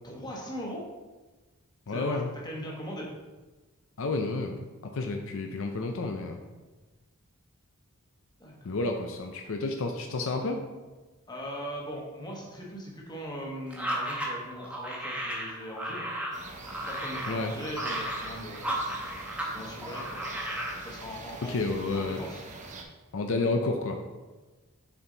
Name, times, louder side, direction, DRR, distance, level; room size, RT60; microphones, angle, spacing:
voice 1, 0.0-0.8 1.9-3.1 8.4-8.8 11.3-16.1 16.7-18.7 19.4-20.2 20.8-21.5 21.9-22.4, equal, 20° left, -2 dB, 1.2 m, -40 dB
voice 2, 1.9-2.3 4.0-4.6 4.9-6.4 8.6-10.6 17.3-17.5 21.4-22.2 23.1-24.0, left 3 dB, 65° left, 4 dB, 0.5 m, -30 dB
sound 1, 13.7-19.5 19.8-20.8, right 1 dB, 5° right, 1.0 m, -34 dB
sound 2, 16.3-22.8, right 3 dB, 35° right, 0.7 m, -44 dB
7.0 x 4.5 x 3.9 m, 1.2 s
head